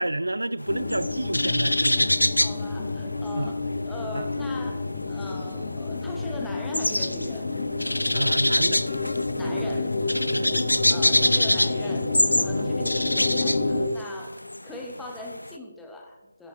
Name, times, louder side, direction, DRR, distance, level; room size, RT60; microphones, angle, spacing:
voice 1, 0.0-2.1 3.4-3.5 4.1-4.2 8.1-8.8 10.3-10.5 12.6-12.7, right 1 dB, 75° right, 0.4 m, -29 dB
sound 1, 0.6-3.7 3.9-15.5, left 1 dB, 85° left, 0.5 m, -26 dB
sound 2, 0.7-13.9, left 3 dB, 35° left, 1.3 m, -29 dB
voice 2, 2.4-7.5 9.4-10.3 10.9-16.5, left 1 dB, 5° left, 0.8 m, -40 dB
13.5 x 10.5 x 2.4 m
figure-of-eight pair, 160°, 0 cm